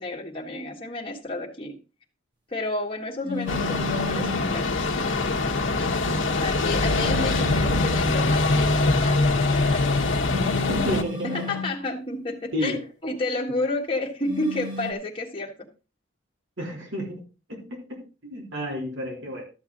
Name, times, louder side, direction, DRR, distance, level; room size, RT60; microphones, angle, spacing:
voice 1, 0.0-1.8 2.5-4.7 5.8-5.9 6.3-10.1 11.2-15.5, left 2 dB, 25° left, -2 dB, 1.6 m, -31 dB
sound 1, 3.2-4.6 6.7-8.2 10.3-11.8 14.3-14.9, left 4 dB, 20° right, 1.4 m, -34 dB
sound 2, 3.5-11.0, left 2 dB, 70° left, 1.2 m, -23 dB
voice 2, 10.3-11.6 12.5-12.8 16.6-17.2 17.5-19.4, equal, 65° right, -1 dB, 3.5 m, -31 dB
13.0 x 7.3 x 3.9 m, 0.33 s
head